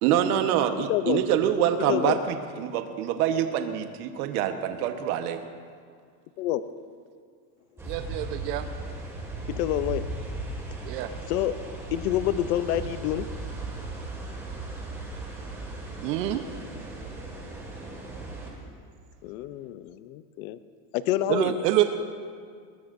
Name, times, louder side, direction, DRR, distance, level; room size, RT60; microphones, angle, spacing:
voice 1, 0.0-5.4, right 9 dB, 65° right, 7 dB, 1.3 m, -25 dB
voice 2, 0.9-1.2 1.9-2.2 6.4-6.6 9.5-10.1 11.3-11.6 11.9-13.3 19.2-20.6 20.9-21.6, left 13 dB, 60° left, 13 dB, 0.7 m, -27 dB
windy night at the beach, 7.8-18.5, right 2 dB, 5° right, 1.9 m, -37 dB
voice 3, 7.9-8.7 10.9-11.1 16.0-16.4 21.3-21.8, right 12 dB, 85° right, 7 dB, 1.0 m, -26 dB
21.0 x 21.0 x 2.6 m, 2.1 s
supercardioid pair, 175°, 48 cm